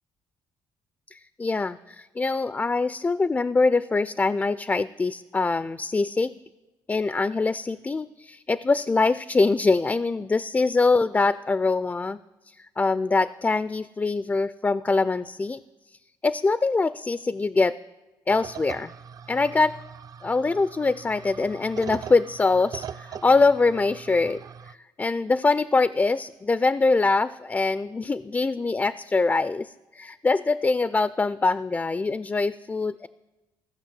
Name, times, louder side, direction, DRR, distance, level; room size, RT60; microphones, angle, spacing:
voice 1, 1.1-6.3 6.9-12.2 12.8-15.6 16.2-17.8 18.3-18.9 19.3-19.7 20.2-33.1, left 3 dB, 20° left, 16 dB, 0.3 m, -23 dB
sound 1, 18.3-24.7, right 7 dB, 45° right, 0.4 m, -41 dB
14.5 x 5.7 x 7.4 m, 1.1 s
supercardioid pair, 65°, 9 cm